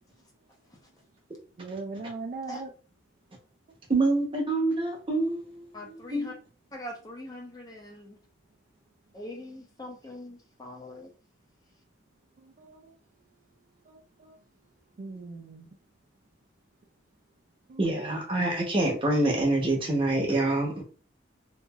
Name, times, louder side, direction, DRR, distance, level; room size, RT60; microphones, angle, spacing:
voice 1, 1.6-2.7 12.4-12.9 13.9-14.3 15.0-15.8 17.7-18.1, right 3 dB, 45° right, 0.3 m, -40 dB
voice 2, 3.9-6.3 17.8-20.8, right 2 dB, 25° right, 0.8 m, -26 dB
voice 3, 5.7-6.3 6.7-8.2 9.1-11.1, left 1 dB, 20° left, 0.5 m, -42 dB
2.8 x 2.4 x 2.2 m
head